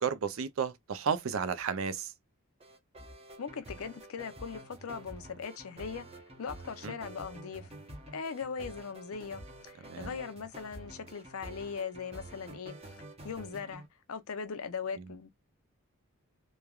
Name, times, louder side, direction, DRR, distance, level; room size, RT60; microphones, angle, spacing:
voice 1, 0.0-2.1 6.8-6.9 9.9-10.1, right 6 dB, 70° right, 0.5 m, -32 dB
sound 1, 2.6-13.9, right 1 dB, 25° right, 0.8 m, -48 dB
voice 2, 3.4-6.1 6.4-7.7 8.1-9.4 9.7-13.0 13.2-13.8 14.1-15.3, left 6 dB, 80° left, 0.5 m, -39 dB
3.1 x 2.2 x 2.3 m
head